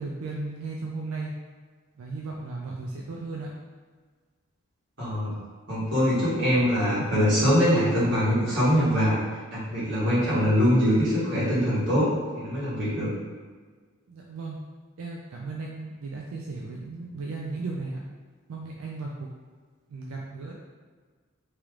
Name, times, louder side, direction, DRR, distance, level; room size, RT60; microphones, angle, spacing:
voice 1, 0.0-1.3 2.0-3.5 14.1-14.6 15.0-18.0 18.5-19.3 19.9-20.5, right 3 dB, 85° right, -2 dB, 0.4 m, -35 dB
voice 2, 5.0-5.3 5.7-9.2 9.5-13.1, equal, 55° right, -10 dB, 1.5 m, -23 dB
3.1 x 3.1 x 2.4 m, 1.5 s
head